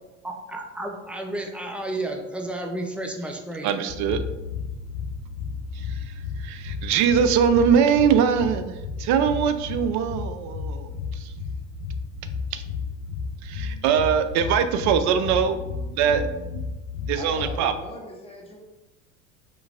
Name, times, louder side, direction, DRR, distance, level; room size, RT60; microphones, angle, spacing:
voice 1, 0.2-3.7, right 1 dB, 5° right, 2 dB, 0.6 m, -32 dB
voice 2, 3.6-4.2 5.8-5.9 6.4-11.3 12.5-12.6 13.4-16.6 17.1-17.7, right 7 dB, 50° right, 11 dB, 0.5 m, -22 dB
sound 1, 3.9-17.6, left 5 dB, 75° left, 0.7 m, -33 dB
voice 3, 17.2-18.6, left 2 dB, 15° left, -1 dB, 1.1 m, -40 dB
5.1 x 3.1 x 2.5 m, 1.1 s
hypercardioid pair, 75°, 38 cm